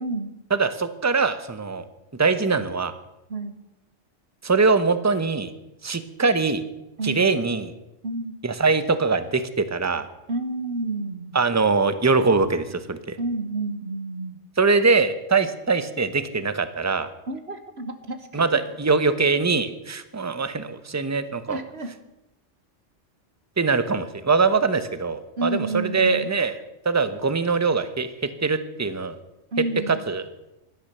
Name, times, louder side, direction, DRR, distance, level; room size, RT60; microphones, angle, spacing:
voice 1, 0.0-0.3 3.3-3.5 7.0-7.3 8.0-8.4 10.3-11.4 13.2-14.4 17.3-18.6 21.5-21.9 25.4-26.3 29.5-30.1, right 2 dB, 55° right, 9 dB, 1.5 m, -30 dB
voice 2, 0.5-1.8 2.2-2.9 4.4-5.5 5.8-6.6 7.0-7.7 8.4-10.1 11.3-13.2 14.6-17.1 18.3-21.6 23.6-26.6 26.8-28.1 28.4-29.2 29.9-30.2, right 4 dB, 15° right, 12 dB, 0.9 m, -22 dB
16.5 x 12.0 x 6.8 m, 0.95 s
omnidirectional pair, 1.3 m